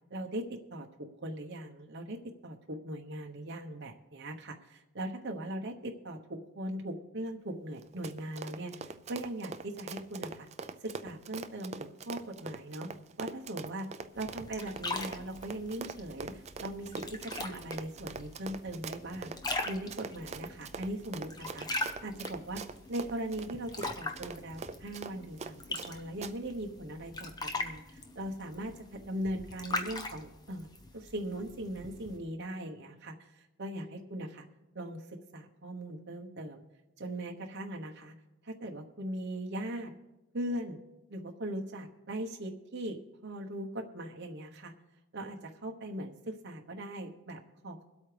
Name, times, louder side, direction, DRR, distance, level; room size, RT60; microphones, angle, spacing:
voice 1, 0.1-0.5 0.7-10.5 10.8-12.9 13.2-13.9 14.1-16.9 17.2-19.3 19.6-21.7 22.0-22.6 22.9-30.7 30.9-34.4 34.7-35.0 35.3-36.6 37.0-38.1 38.4-39.9 40.3-40.8 41.1-43.0 43.2-44.7 45.1-47.8, right 1 dB, 55° right, 2 dB, 1.1 m, -39 dB
Run, 7.8-25.9 26.2-26.3, right 4 dB, 30° right, 0.4 m, -43 dB
sound 1, 14.1-32.2, left 2 dB, 20° left, 0.9 m, -41 dB
23.0 x 8.4 x 3.4 m, 1.0 s
head